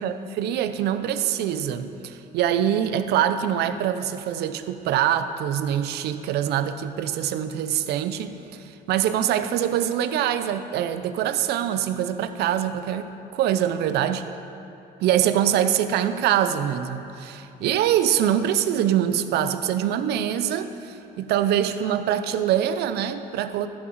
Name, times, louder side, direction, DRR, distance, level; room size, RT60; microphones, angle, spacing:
voice 1, 0.0-14.3 15.0-23.7, right 10 dB, 75° right, 10 dB, 0.7 m, -24 dB
13.5 x 6.1 x 7.7 m, 2.8 s
cardioid pair, 110°, 17 cm